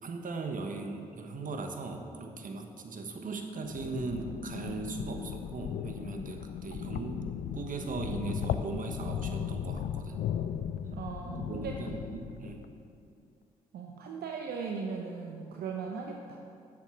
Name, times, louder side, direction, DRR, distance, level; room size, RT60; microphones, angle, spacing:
voice 1, 0.0-7.2 7.5-10.2 11.3-12.6, right 3 dB, 55° right, 4 dB, 1.3 m, -38 dB
sound 1, 3.6-12.8, left 9 dB, 65° left, 0.5 m, -37 dB
voice 2, 10.9-11.8 13.7-16.4, right 5 dB, 70° right, 1 dB, 0.8 m, -38 dB
10.0 x 7.5 x 5.7 m, 2.5 s
hypercardioid pair, 40°, 17 cm